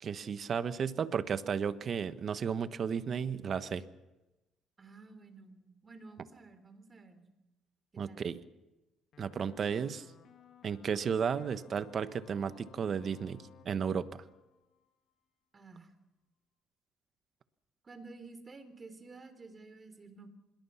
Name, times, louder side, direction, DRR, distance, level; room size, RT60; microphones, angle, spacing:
voice 1, 0.0-3.8 8.0-8.4 9.2-10.1 10.6-14.2, right 7 dB, 45° right, 12 dB, 1.3 m, -34 dB
voice 2, 4.8-7.2 8.1-8.3 15.5-15.9 17.8-20.3, right 3 dB, 30° right, 9 dB, 3.8 m, -52 dB
sound 1, 9.1-15.2, left 7 dB, 55° left, 2.5 m, -59 dB
26.0 x 21.5 x 5.8 m, 1.0 s
cardioid pair, 105°, 0 cm